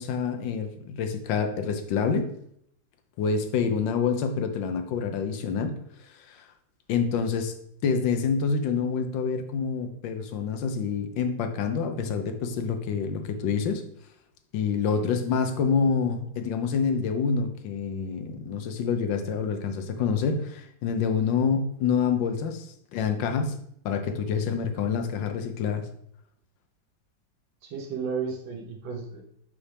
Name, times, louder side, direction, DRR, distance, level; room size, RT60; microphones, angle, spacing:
voice 1, 0.0-2.3 3.2-5.8 6.3-6.4 6.9-7.5 7.8-13.8 14.5-22.7 22.9-23.6 23.8-25.8, left 6 dB, 80° left, 7 dB, 1.4 m, -27 dB
voice 2, 14.9-15.3 27.6-29.2, right 5 dB, 85° right, 2 dB, 1.8 m, -34 dB
6.0 x 5.6 x 3.3 m, 0.70 s
omnidirectional pair, 2.0 m